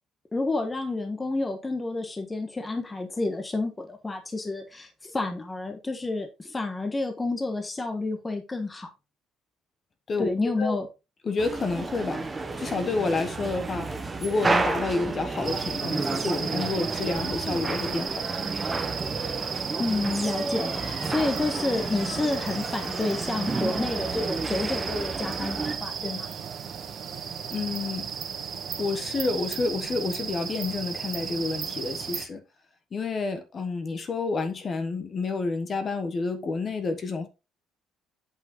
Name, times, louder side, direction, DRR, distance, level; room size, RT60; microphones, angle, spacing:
voice 1, 0.3-8.9 10.2-10.9 19.8-26.3, left 2 dB, 15° left, 1.2 m, -30 dB
voice 2, 11.2-12.3 12.6-18.3 27.5-28.1 28.8-32.4 32.9-37.3, left 3 dB, 30° left, 1.3 m, -29 dB
sound 1, 11.4-25.8, right 3 dB, 15° right, 1.0 m, -31 dB
sound 2, 15.4-32.3, right 7 dB, 45° right, 1.5 m, -34 dB
sound 3, 20.2-24.6, left 3 dB, 80° left, 4.1 m, -45 dB
8.5 x 5.6 x 3.8 m
cardioid pair, 145°, 0 cm